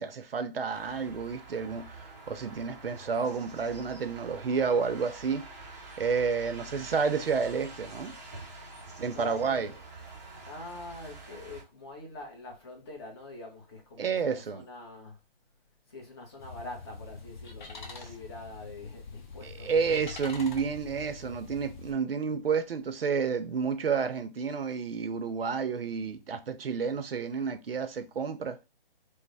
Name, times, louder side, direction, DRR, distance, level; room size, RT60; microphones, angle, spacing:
voice 1, 0.0-5.5 6.0-8.2 9.0-9.7 14.0-14.6 19.4-28.6, right 5 dB, 75° right, 0.6 m, -30 dB
sound 1, 0.7-11.6, right 2 dB, 15° right, 0.5 m, -47 dB
voice 2, 9.1-9.8 10.4-15.2 15.9-20.0, left 2 dB, 25° left, 0.8 m, -45 dB
sound 2, 16.4-21.9, left 4 dB, 55° left, 0.8 m, -45 dB
3.2 x 2.0 x 3.9 m
figure-of-eight pair, 150°, 30 cm